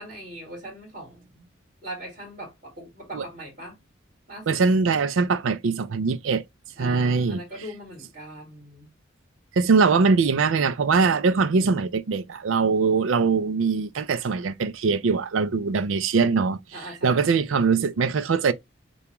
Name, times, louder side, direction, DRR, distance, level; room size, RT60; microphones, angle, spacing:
voice 1, 0.0-1.5 1.8-3.8 4.3-4.6 6.8-8.9 16.7-17.6, right 1 dB, 45° right, 2.6 m, -40 dB
voice 2, 4.5-6.4 6.8-7.4 9.5-16.6 17.0-18.5, right 4 dB, 85° right, 0.5 m, -22 dB
6.9 x 2.3 x 3.0 m
head